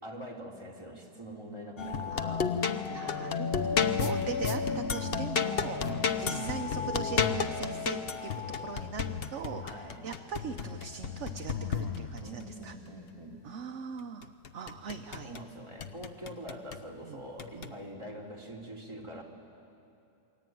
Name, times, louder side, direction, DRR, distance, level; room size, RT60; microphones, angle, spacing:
voice 1, 0.0-2.5 5.8-6.5 9.6-10.0 12.2-13.5 15.2-19.2, right 1 dB, 15° right, -2 dB, 3.4 m, -44 dB
sound 1, 1.8-12.4 14.2-15.4 15.8-16.8 17.4-17.7, left 6 dB, 45° left, 0.9 m, -32 dB
voice 2, 2.1-2.4 2.9-5.8 6.2-8.3 8.6-12.7 13.4-15.3 17.0-17.2 17.6-17.7, right 6 dB, 55° right, 6 dB, 1.0 m, -40 dB
28.0 x 22.5 x 9.3 m, 2.7 s
omnidirectional pair, 1.8 m